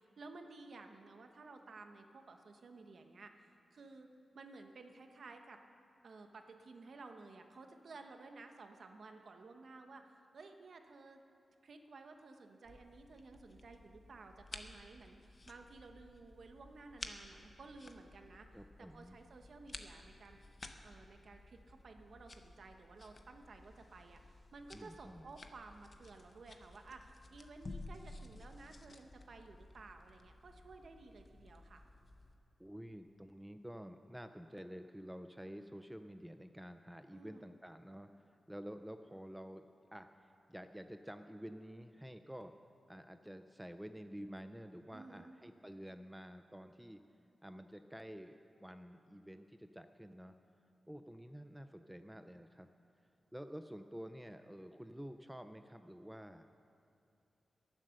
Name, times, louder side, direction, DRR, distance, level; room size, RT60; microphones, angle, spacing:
voice 1, 0.2-4.1 4.3-5.6 6.0-11.2 11.6-18.5 18.8-20.4 20.8-31.8 37.1-37.5 44.9-45.4, right 3 dB, 55° right, 5 dB, 1.1 m, -55 dB
sound 1, 12.6-32.4, left 2 dB, 30° left, 0.8 m, -54 dB
voice 2, 18.5-19.2 24.7-25.3 32.6-39.6 39.9-42.5 42.9-47.0 47.4-50.3 50.9-52.7 53.3-56.4, equal, 5° right, 8 dB, 0.4 m, -50 dB
22.0 x 7.5 x 6.5 m, 2.5 s
wide cardioid pair, 160°, 0 cm